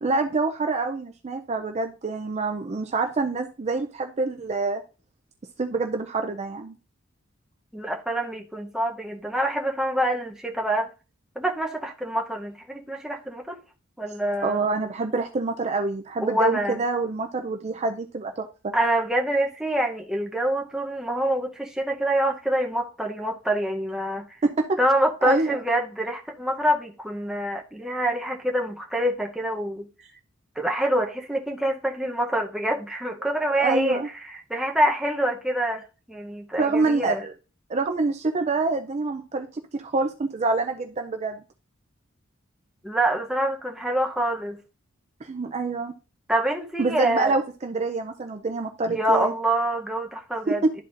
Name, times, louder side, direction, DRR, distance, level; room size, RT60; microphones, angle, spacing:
voice 1, 0.0-4.8 5.6-6.8 14.4-18.7 24.4-24.8 25.2-25.6 33.6-34.1 36.6-37.3 37.7-41.4 45.2-45.9 46.8-49.3 50.5-50.7, right 3 dB, 35° right, 0.5 m, -26 dB
voice 2, 7.7-10.9 11.4-13.6 14.0-14.6 16.2-16.8 18.7-24.3 24.8-29.9 30.6-37.2 42.8-44.6 46.3-47.4 48.9-50.8, right 1 dB, 5° right, 0.8 m, -26 dB
12.0 x 4.1 x 2.6 m
head